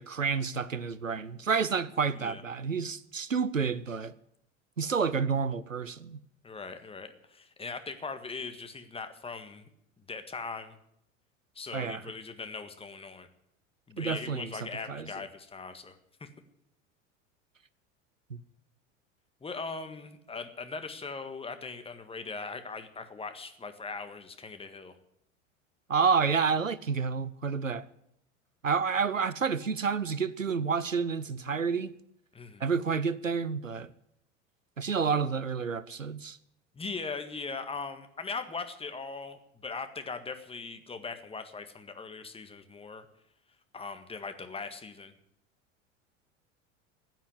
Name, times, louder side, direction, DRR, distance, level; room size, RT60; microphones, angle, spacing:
voice 1, 0.0-4.1 4.8-6.2 11.7-12.0 14.0-14.5 14.9-15.1 18.3-18.4 25.9-27.9 28.6-31.9 32.6-33.9 34.8-36.4, right 5 dB, 90° right, 0.7 m, -29 dB
voice 2, 6.4-9.7 10.1-10.8 11.5-13.3 13.9-16.3 19.4-25.0 32.3-32.7 36.7-43.1 43.7-45.1, left 4 dB, 15° left, 1.7 m, -40 dB
15.5 x 9.3 x 9.7 m
figure-of-eight pair, 80°, 38 cm